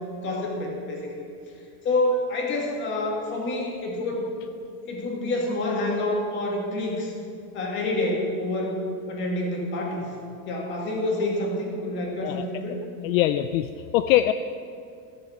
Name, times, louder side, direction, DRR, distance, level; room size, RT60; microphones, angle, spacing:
voice 1, 0.2-1.3 1.8-4.3 4.9-7.1 7.5-10.1 10.5-12.7, left 1 dB, 25° left, -1 dB, 2.0 m, -27 dB
voice 2, 13.0-14.3, left 13 dB, 65° left, 11 dB, 0.5 m, -22 dB
13.5 x 6.8 x 7.6 m, 2.4 s
supercardioid pair, 180°, 44 cm